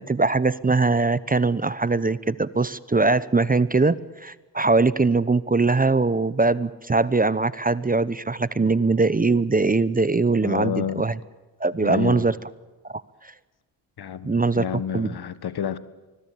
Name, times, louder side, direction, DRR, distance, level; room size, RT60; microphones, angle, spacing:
voice 1, 0.0-11.2 11.6-12.4 12.9-13.3 14.2-14.6 14.9-15.1, right 3 dB, 20° right, 0.9 m, -21 dB
voice 2, 10.4-11.1 11.8-12.3 14.0-15.8, left 8 dB, 60° left, 1.5 m, -29 dB
25.0 x 21.0 x 8.7 m
supercardioid pair, 60°, 44 cm